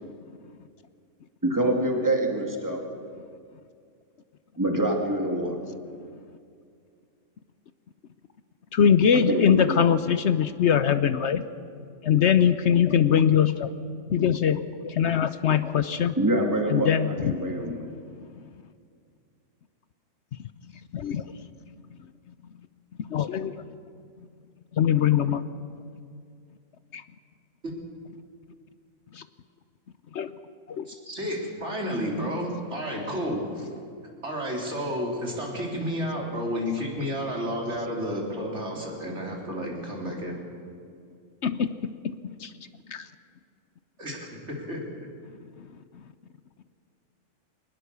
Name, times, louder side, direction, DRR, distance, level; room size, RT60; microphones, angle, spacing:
voice 1, 1.4-2.8 4.6-5.6 9.3-9.8 16.2-17.9, right 1 dB, 15° right, 2 dB, 2.4 m, -25 dB
voice 2, 8.7-11.4 12.0-13.7 14.1-16.1 16.7-17.5 20.9-21.2 23.0-23.5 24.8-25.4 26.9-27.0 30.1-30.3 30.7-30.8 41.4-41.7 42.4-42.5 42.9-43.1, left 8 dB, 65° left, 12 dB, 1.0 m, -22 dB
voice 3, 30.9-33.7 34.2-40.3 44.0-44.8, equal, 60° right, -1 dB, 3.9 m, -31 dB
22.5 x 19.5 x 6.9 m, 2.3 s
omnidirectional pair, 1.3 m